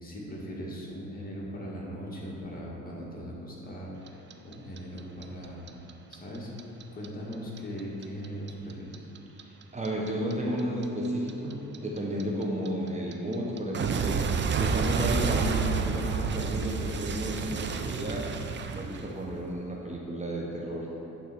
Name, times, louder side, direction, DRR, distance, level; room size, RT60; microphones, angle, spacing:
voice 1, 0.0-5.6 6.1-6.5 6.9-9.1, equal, 30° left, -4 dB, 1.9 m, -39 dB
Clock, 4.1-7.1 7.3-10.3 10.6-19.4, right 5 dB, 40° right, 0.5 m, -30 dB
voice 2, 9.4-20.9, equal, 25° right, -3 dB, 1.1 m, -33 dB
8.9 x 4.0 x 6.0 m, 3.0 s
cardioid pair, 90°, 30 cm